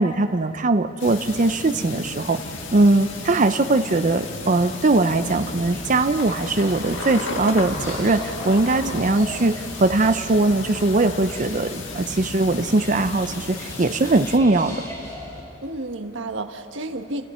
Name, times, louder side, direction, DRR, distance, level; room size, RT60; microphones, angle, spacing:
voice 1, 0.0-2.4 2.7-14.8, right 2 dB, 40° right, 8 dB, 0.6 m, -20 dB
sound 1, 1.0-14.4, left 3 dB, 70° left, 1.8 m, -34 dB
sound 2, 5.1-15.4, equal, 15° left, 5.2 m, -39 dB
voice 2, 8.8-9.1 15.6-17.3, right 2 dB, 75° right, 7 dB, 1.3 m, -32 dB
30.0 x 27.5 x 4.4 m, 3.0 s
head